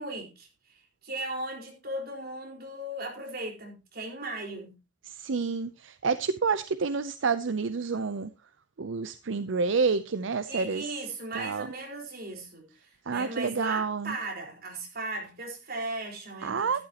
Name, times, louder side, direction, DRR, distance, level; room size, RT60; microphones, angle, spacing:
voice 1, 0.0-4.8 10.5-16.8, right 2 dB, 55° right, 4.4 m, -37 dB
voice 2, 5.0-8.3 8.8-10.9 11.3-11.7 13.1-14.2 16.4-16.8, right 5 dB, 80° right, 0.6 m, -29 dB
12.5 x 12.0 x 2.9 m
head